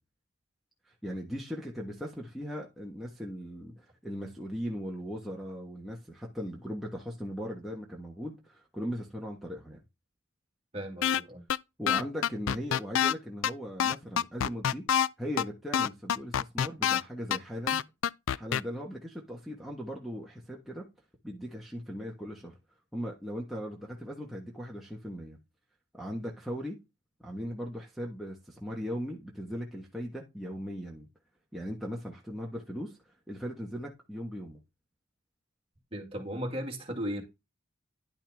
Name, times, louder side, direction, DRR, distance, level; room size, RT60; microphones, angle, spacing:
voice 1, 0.9-9.8 11.8-14.8 15.2-17.8 18.3-20.8 21.2-22.5 22.9-25.4 25.9-26.8 27.2-31.1 31.5-33.0 33.3-34.6, equal, ahead, 1.3 m, -38 dB
voice 2, 10.7-11.4 35.9-37.2, equal, 30° right, 2.1 m, -36 dB
sound 1, 11.0-11.2 11.5-11.6 11.9-13.1 13.4-13.5 13.8-15.1 15.4-15.5 15.7-17.0 17.3-17.4 17.7-18.6, left 9 dB, 75° left, 0.4 m, -26 dB
10.5 x 5.6 x 3.5 m
head